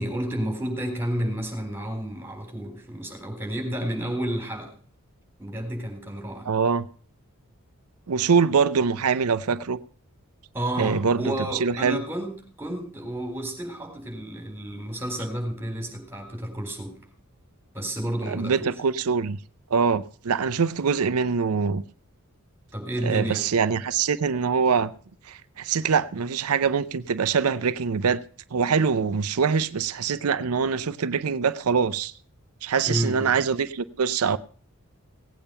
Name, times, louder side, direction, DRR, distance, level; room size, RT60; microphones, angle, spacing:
voice 1, 0.0-4.7 5.4-6.5 10.5-12.3 12.6-16.9 17.7-18.7 22.7-23.5 32.9-33.4, right 1 dB, 10° right, 3.8 m, -31 dB
voice 2, 6.5-6.9 8.1-9.8 10.8-12.0 18.3-19.4 19.7-21.8 23.0-24.9 25.3-28.2 28.5-32.1 32.6-34.4, right 6 dB, 90° right, 0.6 m, -24 dB
17.5 x 8.8 x 5.5 m
head